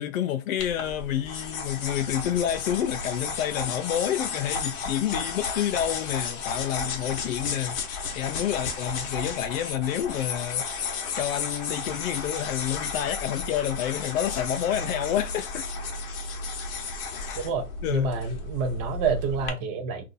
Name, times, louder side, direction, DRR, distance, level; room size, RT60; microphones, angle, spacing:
voice 1, 0.0-15.7 17.2-17.5 17.8-18.1, left 11 dB, 70° left, 0.5 m, -29 dB
sound 1, 0.6-19.5, left 4 dB, 40° left, 0.8 m, -33 dB
voice 2, 17.4-20.0, right 5 dB, 30° right, 0.6 m, -28 dB
2.6 x 2.3 x 3.9 m
hypercardioid pair, 145°, 42 cm